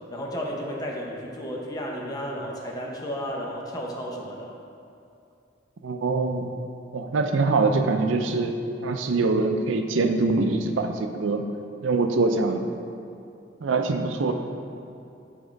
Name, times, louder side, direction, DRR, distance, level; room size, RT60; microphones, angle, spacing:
voice 1, 0.1-4.5, equal, 20° left, -2 dB, 0.8 m, -33 dB
voice 2, 5.8-6.5 6.9-8.6 8.8-11.4 11.8-12.7 13.6-14.3, right 3 dB, 85° right, 6 dB, 0.5 m, -24 dB
7.2 x 3.6 x 5.1 m, 2.6 s
head